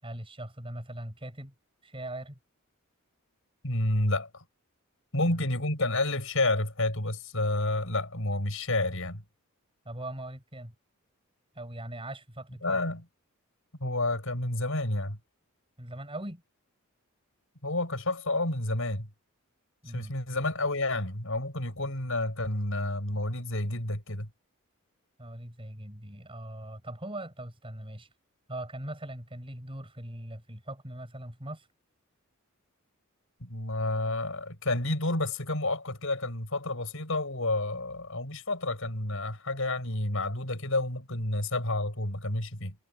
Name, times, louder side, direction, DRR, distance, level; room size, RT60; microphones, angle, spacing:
voice 1, 0.0-1.5 1.8-2.4 5.2-5.4 9.9-10.7 11.5-13.0 15.8-16.4 19.8-20.2 25.2-28.1 28.5-31.7, right 1 dB, 25° right, 7.2 m, -41 dB
voice 2, 3.6-4.4 5.1-9.2 12.6-13.1 13.8-15.2 17.6-19.1 19.9-24.3 33.4-42.8, left 2 dB, 65° left, 7.2 m, -30 dB
head